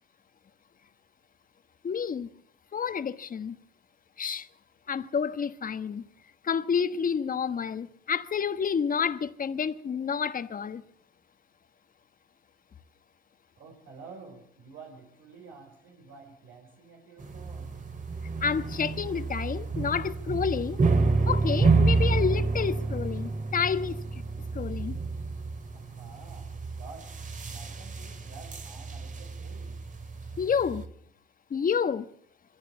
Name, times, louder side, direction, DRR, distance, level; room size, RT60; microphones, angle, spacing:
voice 1, 1.8-2.3 2.7-3.6 4.2-4.5 4.9-6.0 6.4-10.8 18.4-20.8 21.3-24.0 24.5-25.0 30.4-30.9 31.5-32.1, left 6 dB, 45° left, 1.3 m, -29 dB
voice 2, 13.6-17.8 25.7-26.5 26.8-27.1 27.5-29.8, right 4 dB, 75° right, 4.3 m, -49 dB
sound 1, 17.2-30.9, right 3 dB, 40° right, 2.5 m, -29 dB
22.5 x 16.0 x 8.1 m
cardioid pair, 90°, 20 cm